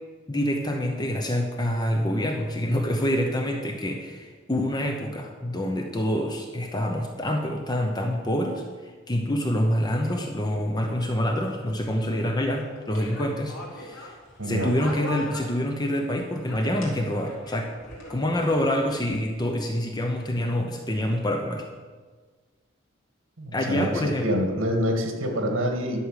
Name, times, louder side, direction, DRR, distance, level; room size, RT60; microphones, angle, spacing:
voice 1, 0.3-14.2 14.4-17.7 18.1-21.7 23.5-24.3, left 1 dB, 20° left, 2 dB, 0.8 m, -26 dB
sound 1, 11.4-16.1 16.4-19.2, left 1 dB, 70° left, 3.3 m, -41 dB
voice 2, 14.4-14.7 23.4-23.9 24.2-26.0, equal, 75° right, 3 dB, 1.9 m, -26 dB
11.5 x 6.5 x 6.6 m, 1.5 s
head